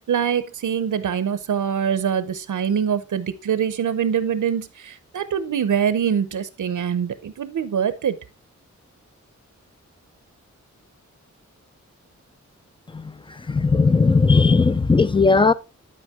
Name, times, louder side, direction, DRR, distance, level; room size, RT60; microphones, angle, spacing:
voice 1, 0.1-8.2, right 8 dB, 85° right, 0.7 m, -24 dB
voice 2, 13.5-15.5, left 4 dB, 15° left, 0.4 m, -16 dB
11.0 x 5.2 x 3.6 m
wide cardioid pair, 155°, 30 cm